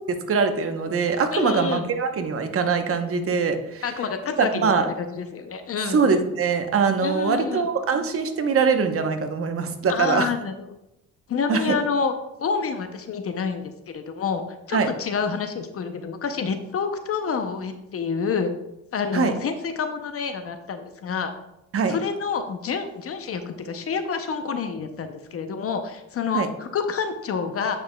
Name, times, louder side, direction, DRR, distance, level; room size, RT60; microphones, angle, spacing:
voice 1, 0.1-3.8 4.4-4.9 5.9-10.3 11.5-11.8 14.7-14.9 19.1-19.3 21.7-22.0 26.3-26.5, right 5 dB, 50° right, 7 dB, 0.9 m, -23 dB
voice 2, 1.3-1.8 3.8-6.0 7.0-7.7 9.9-10.7 11.3-12.1 12.4-14.4 14.7-18.5 18.9-21.3 21.9-27.8, left 5 dB, 50° left, 8 dB, 0.6 m, -28 dB
8.5 x 5.4 x 2.2 m, 0.89 s
cardioid pair, 90°, 30 cm